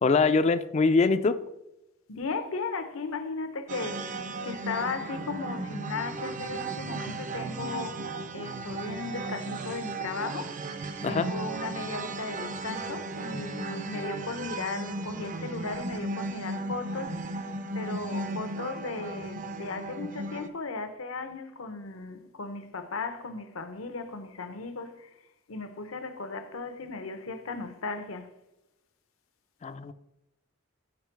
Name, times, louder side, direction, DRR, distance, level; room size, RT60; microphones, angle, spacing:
voice 1, 0.0-1.4 11.0-11.3 29.6-29.9, left 4 dB, 30° left, 0.3 m, -23 dB
voice 2, 2.1-10.5 11.0-17.4 17.7-25.1 25.5-28.3, left 4 dB, 80° left, 0.8 m, -36 dB
sound 1, 3.7-20.5, right 2 dB, 40° right, 0.5 m, -36 dB
7.4 x 5.3 x 4.5 m
head